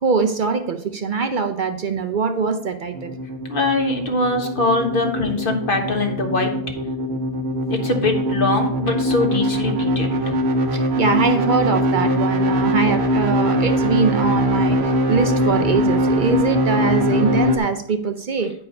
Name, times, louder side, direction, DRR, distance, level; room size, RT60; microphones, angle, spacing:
voice 1, 0.0-3.2 10.7-18.5, right 5 dB, 55° right, 8 dB, 0.7 m, -22 dB
sound 1, 2.9-17.6, equal, 80° right, 1.2 m, -22 dB
voice 2, 3.5-6.5 7.7-10.3, left 2 dB, 55° left, 3 dB, 1.4 m, -22 dB
9.7 x 4.6 x 5.3 m, 0.66 s
omnidirectional pair, 1.1 m